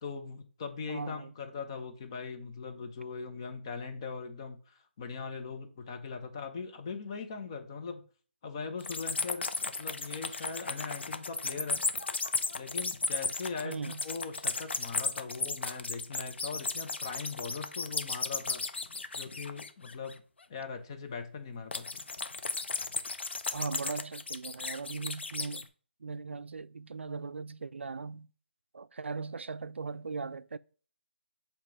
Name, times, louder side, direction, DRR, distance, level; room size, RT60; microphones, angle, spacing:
voice 1, 0.0-8.0 8.4-11.8 12.5-18.6 19.1-20.2 20.5-22.0, left 5 dB, 25° left, 0.7 m, -40 dB
voice 2, 0.9-1.3 13.6-14.0 23.5-25.7 26.0-28.3 28.7-30.6, right 4 dB, 85° right, 0.3 m, -39 dB
sound 1, 8.8-20.1 21.7-25.7, left 4 dB, 70° left, 0.7 m, -35 dB
7.4 x 2.9 x 4.7 m
hypercardioid pair, 165°, 6 cm